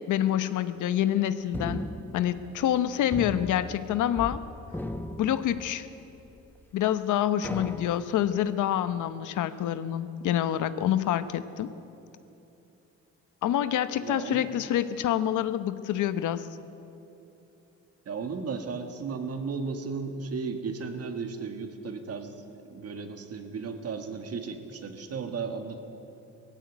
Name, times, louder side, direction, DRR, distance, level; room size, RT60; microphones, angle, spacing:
voice 1, 0.1-1.8 2.1-4.4 5.2-5.9 6.7-11.7 13.4-16.5, left 11 dB, 80° left, 12 dB, 1.0 m, -27 dB
sound 1, 1.5-2.8 3.1-4.4 4.7-6.0 6.6-6.7 7.4-8.3, left 1 dB, 5° left, 1.2 m, -37 dB
voice 2, 14.0-14.5 18.1-22.3 22.6-25.8, right 5 dB, 55° right, 6 dB, 2.1 m, -35 dB
18.0 x 15.5 x 9.6 m, 2.9 s
cardioid pair, 90°, 30 cm